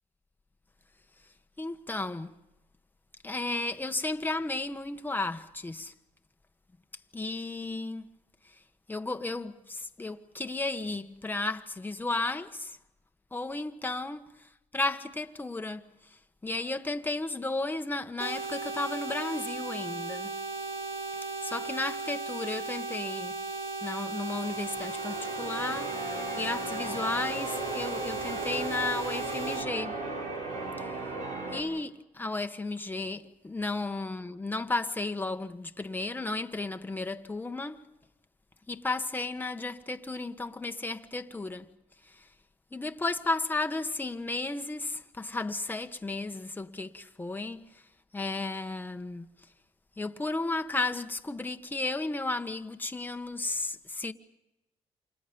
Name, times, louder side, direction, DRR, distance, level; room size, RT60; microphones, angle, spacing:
voice 1, 1.6-2.3 3.2-5.9 7.1-8.2 8.4-8.6 8.9-12.8 13.3-20.4 21.4-23.4 23.8-30.0 30.8-30.9 31.5-37.9 38.7-41.7 42.0-42.3 42.7-49.3 50.0-54.1, left 2 dB, 15° left, 1.4 m, -34 dB
sound 1, 18.2-29.6, right 3 dB, 50° right, 2.3 m, -36 dB
Church bell, 24.3-31.6, right 2 dB, 80° right, 8.0 m, -37 dB
29.0 x 27.5 x 5.4 m
cardioid pair, 90°, 12 cm